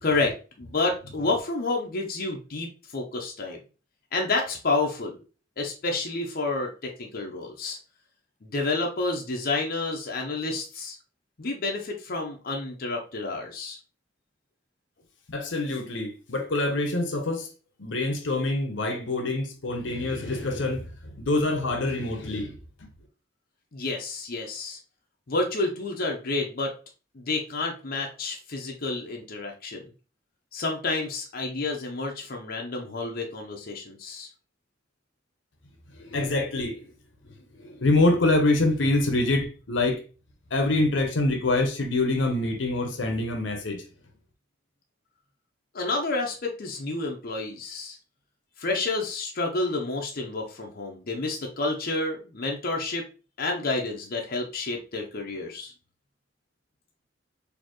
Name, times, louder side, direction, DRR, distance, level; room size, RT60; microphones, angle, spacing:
voice 1, 0.0-3.6 4.1-5.2 5.6-7.8 8.4-11.0 11.4-13.8 23.7-24.8 25.3-26.7 27.1-29.8 30.5-34.3 45.7-48.0 48.6-53.0 53.4-55.7, left 3 dB, 50° left, 0.7 m, -29 dB
voice 2, 15.3-17.5 17.8-22.9 35.9-36.9 37.6-40.0 40.5-43.8, left 2 dB, 80° left, 0.9 m, -25 dB
4.3 x 2.8 x 3.0 m
head